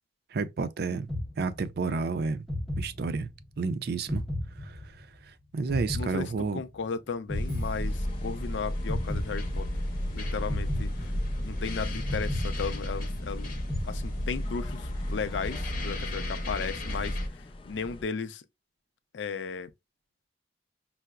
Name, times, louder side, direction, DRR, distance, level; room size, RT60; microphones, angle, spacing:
voice 1, 0.3-1.1 1.4-2.4 2.8-3.3 3.6-4.2 4.6-5.1 5.5-6.6, right 4 dB, 60° right, 0.4 m, -30 dB
sound 1, 1.1-2.0 2.5-3.5 4.1-5.2 5.7-6.9 7.3-8.5 8.9-9.9 10.5-11.6 12.1-13.3 13.7-14.6, left 1 dB, ahead, 0.7 m, -35 dB
voice 2, 5.9-9.8 10.1-11.1 11.4-13.5 13.9-18.4 19.1-19.7, left 5 dB, 90° left, 0.4 m, -35 dB
sound 2, 7.3-17.3, left 1 dB, 50° left, 0.8 m, -33 dB
sound 3, 7.8-18.0, left 2 dB, 30° left, 0.4 m, -46 dB
5.5 x 2.0 x 2.3 m
head